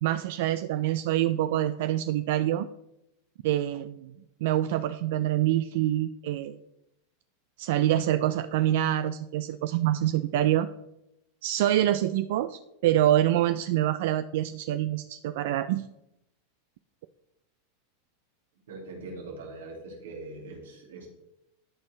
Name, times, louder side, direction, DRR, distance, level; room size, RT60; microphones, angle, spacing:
voice 1, 0.0-2.7 3.4-4.1 4.4-6.6 7.6-10.7 11.4-15.9, right 13 dB, 70° right, 12 dB, 0.3 m, -26 dB
voice 2, 18.7-21.1, right 2 dB, 90° right, 0 dB, 2.3 m, -42 dB
12.5 x 4.5 x 3.2 m, 0.86 s
hypercardioid pair, 115°, 0 cm